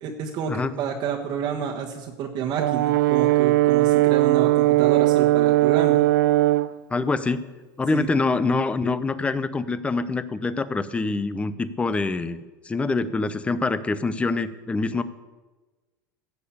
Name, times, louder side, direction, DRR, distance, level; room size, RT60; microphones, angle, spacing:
voice 1, 0.0-6.0 7.9-8.1, right 7 dB, 45° right, -1 dB, 1.4 m, -29 dB
Brass instrument, 2.6-6.7, right 16 dB, 85° right, 0.4 m, -19 dB
voice 2, 6.9-7.4 7.8-15.0, left 3 dB, 10° left, 14 dB, 0.7 m, -25 dB
15.5 x 6.6 x 8.6 m, 1.2 s
supercardioid pair, 140°, 10 cm